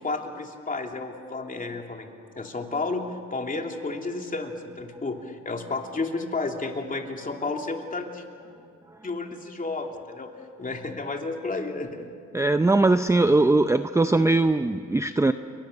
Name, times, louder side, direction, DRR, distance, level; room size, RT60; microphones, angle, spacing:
voice 1, 0.0-3.0 3.3-8.2 9.0-10.3 10.6-12.1, left 3 dB, 25° left, 3 dB, 2.9 m, -32 dB
voice 2, 12.3-15.3, right 2 dB, 10° right, 10 dB, 0.6 m, -20 dB
28.5 x 23.0 x 6.8 m, 2.3 s
cardioid pair, 90°, 30 cm